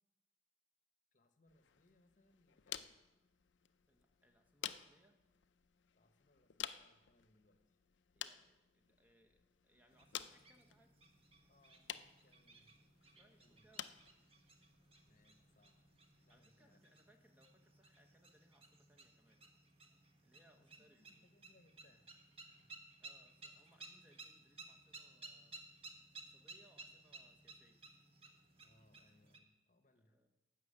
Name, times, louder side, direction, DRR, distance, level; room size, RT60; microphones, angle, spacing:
voice 1, 1.1-3.0 5.9-7.8 11.5-14.0 15.0-15.9 16.2-16.8 20.6-22.1 22.4-22.8 28.6-30.2, left 1 dB, 45° left, 7 dB, 1.0 m, -73 dB
sound 1, 1.5-16.5, left 10 dB, 85° left, 0.5 m, -53 dB
voice 2, 3.9-5.2 8.1-11.0 13.2-13.9 16.3-19.5 20.2-21.2 23.0-25.6 26.2-27.8 30.0-30.3, equal, 10° right, 4 dB, 0.9 m, -71 dB
sound 2, 9.9-29.4, right 3 dB, 30° right, 1.3 m, -59 dB
13.0 x 6.0 x 8.6 m, 1.0 s
head